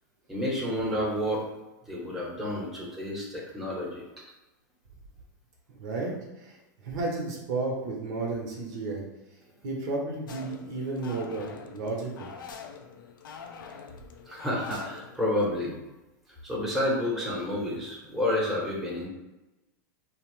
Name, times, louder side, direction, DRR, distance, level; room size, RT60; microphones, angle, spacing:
voice 1, 0.3-1.5 1.9-4.0 14.3-15.7 16.4-19.1, left 1 dB, ahead, -5 dB, 1.0 m, -30 dB
voice 2, 5.8-6.6 6.8-9.0 9.6-12.3, right 3 dB, 60° right, -1 dB, 0.8 m, -32 dB
sound 1, 10.3-15.5, left 6 dB, 85° left, 0.4 m, -45 dB
3.0 x 2.0 x 3.0 m, 1.0 s
hypercardioid pair, 110°, 11 cm